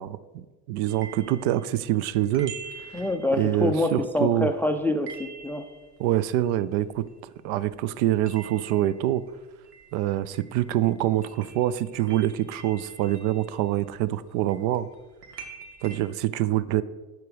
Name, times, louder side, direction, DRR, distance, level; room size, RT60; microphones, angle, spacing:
voice 1, 0.0-2.5 2.9-3.0 3.3-4.5 6.0-9.2 9.9-14.9 15.8-16.8, right 13 dB, 50° right, 16 dB, 0.5 m, -25 dB
sound 1, 0.9-7.5 7.7-16.0, right 5 dB, 85° right, 1.3 m, -46 dB
voice 2, 2.9-5.6, left 1 dB, 5° left, 8 dB, 0.4 m, -26 dB
7.9 x 6.7 x 5.0 m, 1.2 s
hypercardioid pair, 75°, 46 cm